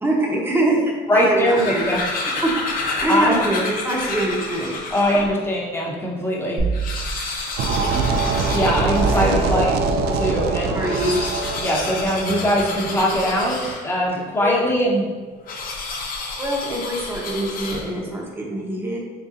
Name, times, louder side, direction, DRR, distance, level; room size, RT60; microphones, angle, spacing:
voice 1, 0.0-2.6 3.0-4.9 9.2-9.4 10.7-11.3 14.4-14.8 16.4-19.0, right 1 dB, 15° right, -2 dB, 0.8 m, -24 dB
voice 2, 1.1-2.0 3.1-3.4 4.9-6.6 7.8-8.0 8.3-9.7 10.1-10.8 11.6-15.0, equal, 15° left, -3 dB, 0.9 m, -21 dB
sound 1, 1.2-5.3 5.9-6.0 6.2-6.3 6.6-9.7 10.7-14.1 15.4-18.1, left 3 dB, 55° left, 0.8 m, -30 dB
sound 2, 6.6-7.9 8.4-10.5 11.1-11.2, right 4 dB, 40° right, 0.9 m, -27 dB
sound 3, 7.6-13.7, right 3 dB, 70° right, 0.4 m, -24 dB
4.1 x 3.4 x 2.5 m, 1.4 s
cardioid pair, 110°, 17 cm